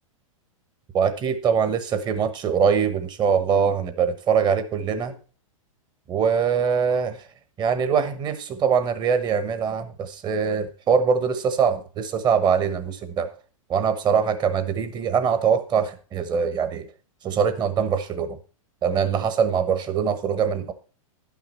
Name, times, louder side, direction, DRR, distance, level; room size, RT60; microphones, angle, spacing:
voice 1, 0.9-5.1 6.1-7.2 7.6-13.3 13.7-16.9 17.2-18.4 18.8-20.7, right 6 dB, 25° right, 10 dB, 1.1 m, -23 dB
11.0 x 6.0 x 4.4 m, 0.37 s
hypercardioid pair, 125°, 18 cm